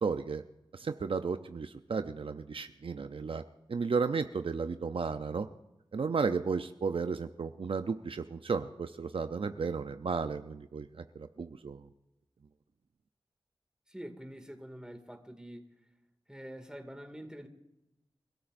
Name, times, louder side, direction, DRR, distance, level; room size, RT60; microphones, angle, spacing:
voice 1, 0.0-0.4 0.7-3.4 3.7-5.5 5.9-10.9 11.2-11.8, right 5 dB, 65° right, 9 dB, 0.6 m, -33 dB
voice 2, 13.9-15.7 16.3-17.5, equal, 10° right, 5 dB, 2.3 m, -46 dB
28.0 x 13.0 x 2.6 m, 0.92 s
cardioid pair, 45°, 10 cm